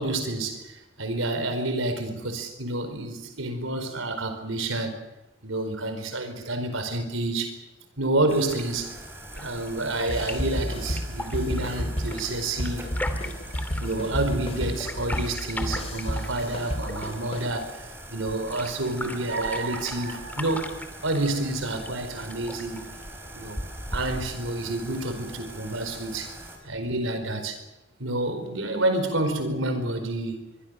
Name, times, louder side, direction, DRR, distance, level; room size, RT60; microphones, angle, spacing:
voice 1, 0.0-4.9 5.4-7.6 8.0-8.9 9.3-12.9 13.8-17.8 18.1-22.8 23.3-23.6 23.9-26.3 26.6-27.6 28.0-30.4, right 2 dB, 90° right, 4.7 m, -29 dB
sound 1, 8.3-26.6, right 1 dB, 10° right, 5.1 m, -43 dB
sound 2, 8.5-24.5, left 1 dB, 10° left, 2.6 m, -39 dB
sound 3, 10.1-17.4, equal, 30° left, 4.0 m, -31 dB
24.0 x 23.5 x 6.6 m
head